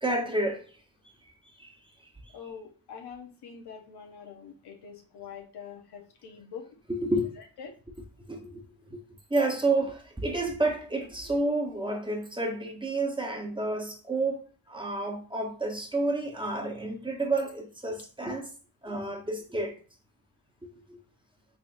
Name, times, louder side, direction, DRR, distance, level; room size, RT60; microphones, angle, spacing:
voice 1, 0.0-0.6 1.6-1.7 6.9-7.3 8.3-8.6 8.9-9.0 9.3-18.5 18.8-19.8 20.6-21.0, right 2 dB, 15° right, 1.0 m, -30 dB
voice 2, 2.3-6.8 7.4-7.7, left 6 dB, 90° left, 0.8 m, -45 dB
3.6 x 3.6 x 2.5 m
cardioid pair, 60°, 39 cm